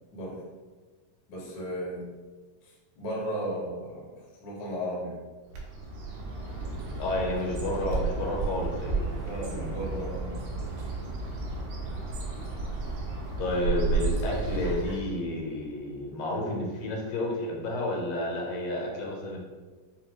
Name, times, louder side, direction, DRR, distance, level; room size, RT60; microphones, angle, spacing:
voice 1, 1.3-2.1 2.6-5.2 9.2-10.7, equal, 55° left, -5 dB, 1.2 m, -35 dB
Bird, 5.5-15.2, right 3 dB, 80° right, 2.5 m, -32 dB
voice 2, 7.0-9.0 9.5-9.8 13.4-19.4, left 1 dB, 80° left, -2 dB, 2.6 m, -31 dB
6.8 x 2.5 x 2.9 m, 1.4 s
omnidirectional pair, 4.0 m